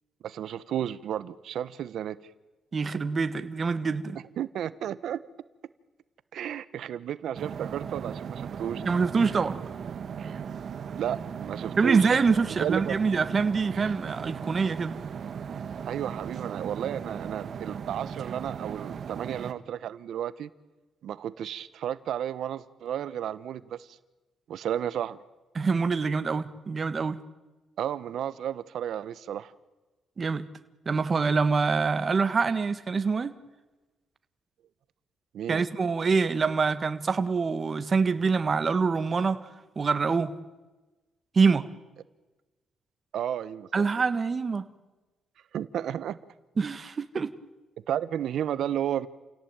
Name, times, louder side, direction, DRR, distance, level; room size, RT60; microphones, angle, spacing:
voice 1, 0.2-2.2 4.4-5.2 6.3-8.8 11.0-12.1 12.5-13.0 15.8-20.5 21.0-24.0 24.5-25.2 27.8-29.5 35.3-35.6 43.1-43.7 45.5-46.2 47.9-49.1, right 10 dB, 70° right, 15 dB, 1.1 m, -32 dB
voice 2, 2.7-4.2 8.8-9.6 11.8-14.9 25.5-27.2 30.2-30.4 30.8-33.3 35.5-39.4 39.7-40.3 41.3-41.6 43.7-44.7 46.6-47.3, right 4 dB, 35° right, 11 dB, 1.6 m, -25 dB
sound 1, 7.3-19.5, right 7 dB, 55° right, 1.6 m, -37 dB
29.0 x 17.0 x 9.0 m, 1.2 s
cardioid pair, 90°, 0 cm